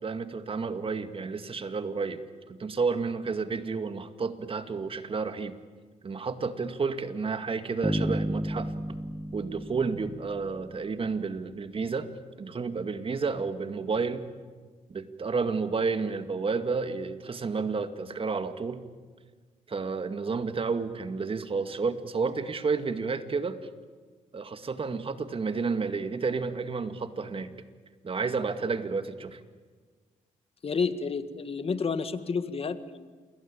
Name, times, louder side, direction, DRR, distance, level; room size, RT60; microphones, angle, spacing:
voice 1, 0.0-2.2 2.5-5.5 6.0-8.7 9.3-12.1 12.4-14.3 14.9-18.8 19.7-23.6 24.3-27.5 28.0-29.4, right 4 dB, 40° right, 9 dB, 2.2 m, -31 dB
sound 1, 7.8-10.9, equal, 5° right, 1.3 m, -32 dB
voice 2, 30.6-33.1, left 5 dB, 45° left, 11 dB, 1.9 m, -30 dB
28.0 x 22.5 x 8.9 m, 1.5 s
cardioid pair, 75°, 14 cm